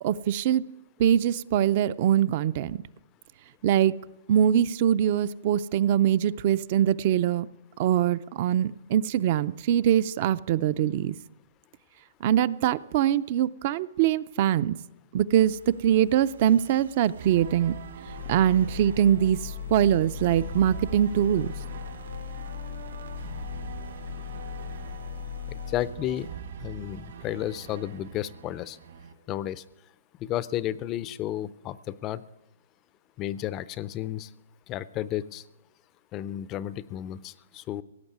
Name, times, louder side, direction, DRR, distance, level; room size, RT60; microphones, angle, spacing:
voice 1, 0.0-0.6 1.0-2.8 3.6-3.9 4.3-7.5 7.8-11.2 12.2-14.8 15.1-17.8 18.3-21.5, right 10 dB, 40° right, 17 dB, 0.4 m, -23 dB
sound 1, 15.4-25.7, right 9 dB, 80° right, 1.5 m, -52 dB
sound 2, 17.2-29.1, right 7 dB, 65° right, 1.9 m, -43 dB
sound 3, 18.1-25.9, left 9 dB, 65° left, 0.8 m, -38 dB
voice 2, 25.5-26.3 26.6-28.8 29.3-29.6 30.2-32.2 33.2-34.3 34.7-35.4 36.1-37.8, left 12 dB, 25° left, 18 dB, 0.4 m, -32 dB
17.0 x 7.9 x 9.4 m, 0.93 s
hypercardioid pair, 160°, 0 cm